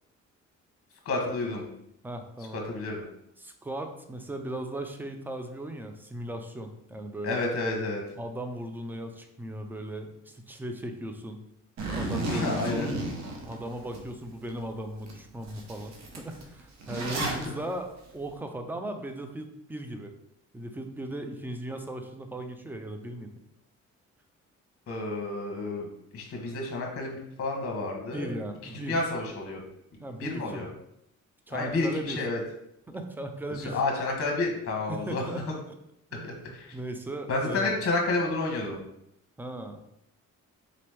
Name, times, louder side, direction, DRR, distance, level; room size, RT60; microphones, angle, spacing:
voice 1, 1.0-1.6 2.7-3.1 7.2-8.0 12.3-12.9 17.2-17.5 24.9-25.9 26.1-28.3 28.9-29.6 30.2-30.7 31.5-32.4 33.7-35.3 36.2-36.7 37.3-38.8, left 2 dB, 50° left, 1 dB, 1.0 m, -30 dB
voice 2, 2.0-2.6 3.4-7.4 8.2-11.4 11.9-12.9 13.4-20.1 20.5-23.3 28.1-29.0 30.0-30.7 31.5-32.2 32.9-33.8 34.9-35.8 36.1-36.3 36.7-37.7 39.4-39.8, right 1 dB, 5° right, 6 dB, 0.5 m, -37 dB
Zipper (clothing), 11.8-14.0 14.5-14.6 15.1-15.2 15.4-17.5, right 2 dB, 60° right, 0.9 m, -33 dB
3.9 x 2.9 x 3.4 m, 0.78 s
cardioid pair, 90°, 30 cm